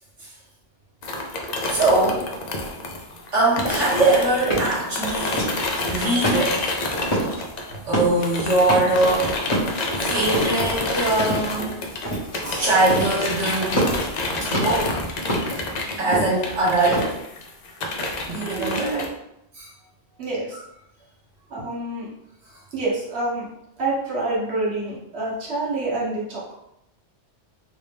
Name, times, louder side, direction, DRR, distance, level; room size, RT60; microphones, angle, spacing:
sound 1, 1.0-7.9 8.2-19.1, left 2 dB, 55° left, 0.5 m, -28 dB
voice 1, 1.7-2.2 3.3-5.5 5.9-6.7 7.8-9.3 10.0-11.8 12.4-13.9 14.5-15.0 16.0-17.2 18.3-19.1 19.5-19.7, right 2 dB, 80° right, -7 dB, 1.3 m, -22 dB
sound 2, 3.6-5.8 6.2-6.8 7.1-7.5 7.8-8.3 8.6-9.2 9.5-10.8 11.2-11.7 12.1-12.4 12.7-13.3 13.6-14.9 15.3-17.0, equal, 35° left, 1.2 m, -26 dB
voice 2, 18.6-19.1 20.2-20.6 21.5-22.1 22.7-23.5 23.8-26.5, right 2 dB, 60° right, -6 dB, 1.4 m, -27 dB
3.4 x 2.6 x 3.3 m, 0.80 s
omnidirectional pair, 1.2 m